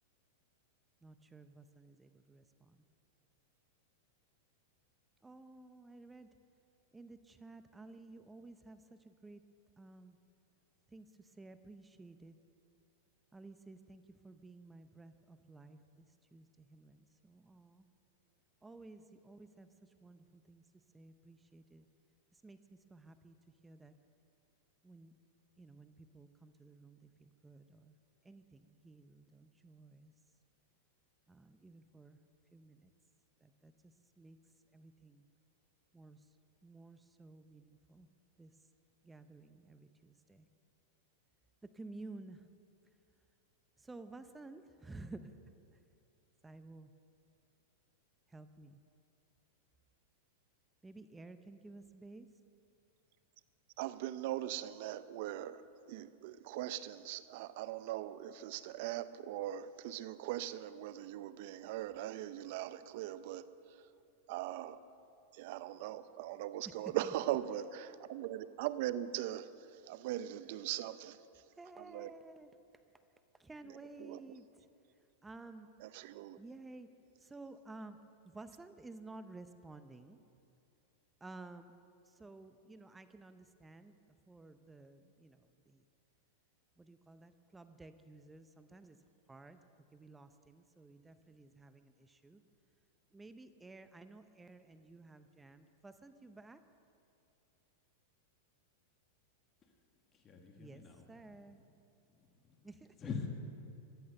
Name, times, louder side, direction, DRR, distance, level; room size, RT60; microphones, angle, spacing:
voice 1, 1.0-2.8 5.2-6.3 6.9-9.4 9.8-10.2 10.9-12.4 13.3-17.9 18.6-19.7 20.0-20.6 20.9-21.9 22.3-23.4 23.6-24.0 24.8-25.1 25.6-28.0 28.2-30.1 31.3-32.2 32.5-32.9 33.4-34.4 34.7-35.2 35.9-36.2 36.6-38.1 38.4-38.5 39.0-40.5 41.6-42.4 43.8-45.3 46.4-46.9 48.3-48.8 50.8-52.3 71.5-72.5 73.4-74.7 75.2-75.7 76.4-76.9 77.2-78.0 78.2-80.2 81.2-81.7 82.1-85.8 86.8-89.0 89.3-89.6 89.9-92.4 93.1-96.6 100.6-100.8 101.1-101.6 102.6-103.0, right 2 dB, 10° right, 10 dB, 0.7 m, -54 dB
voice 2, 53.8-55.6 55.9-63.8 64.3-64.8 65.3-71.2 71.8-72.1 73.7-74.2 75.8-76.4, right 13 dB, 60° right, 14 dB, 0.6 m, -40 dB
voice 3, 100.1-101.0 101.5-101.6 102.5-102.6 103.0-103.3, left 5 dB, 25° left, 2 dB, 1.7 m, -43 dB
15.0 x 11.0 x 6.6 m, 2.6 s
hypercardioid pair, 120°, 0 cm